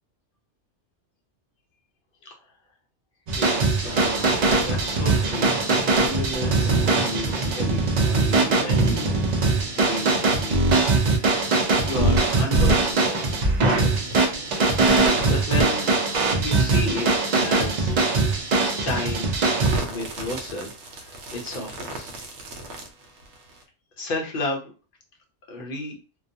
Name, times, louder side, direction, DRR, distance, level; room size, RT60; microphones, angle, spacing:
sound 1, 3.3-19.8, right 3 dB, 50° right, 0.5 m, -21 dB
voice 1, 3.4-4.3 4.5-5.5 5.9-9.3 9.8-11.4 11.8-14.2 14.8-15.9 16.4-18.0 18.8-19.3 19.9-22.1 24.0-24.7 25.5-25.9, left 2 dB, 55° left, 1 dB, 0.8 m, -33 dB
sound 2, 3.8-23.6, right 2 dB, 70° right, 0.9 m, -36 dB
2.3 x 2.2 x 2.6 m, 0.34 s
omnidirectional pair, 1.2 m